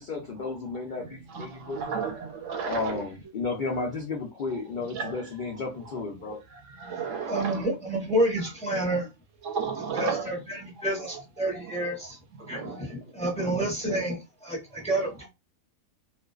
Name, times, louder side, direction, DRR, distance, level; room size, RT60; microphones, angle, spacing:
voice 1, 0.0-2.0 2.6-6.4, left 4 dB, 75° left, 0.4 m, -33 dB
voice 2, 1.3-3.0 4.9-5.2 6.3-6.4 6.8-7.6 9.4-10.3 12.4-12.9, right 5 dB, 70° right, 0.9 m, -33 dB
voice 3, 7.3-9.1 9.9-12.2 12.5-15.3, right 1 dB, 5° left, 0.5 m, -29 dB
2.5 x 2.2 x 2.3 m
omnidirectional pair, 1.5 m